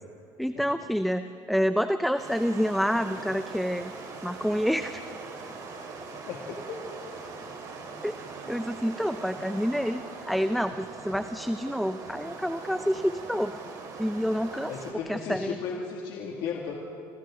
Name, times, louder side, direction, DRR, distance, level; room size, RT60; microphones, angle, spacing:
voice 1, 0.4-3.9 4.2-5.0 8.0-8.1 8.5-13.6 14.0-14.7 15.1-15.6, equal, ahead, 10 dB, 0.5 m, -28 dB
sound 1, 2.2-14.9, right 4 dB, 45° right, 4.1 m, -41 dB
voice 2, 6.3-6.8 14.7-16.7, left 6 dB, 65° left, -1 dB, 2.3 m, -35 dB
27.0 x 26.0 x 3.8 m, 2.6 s
cardioid pair, 120°, 9 cm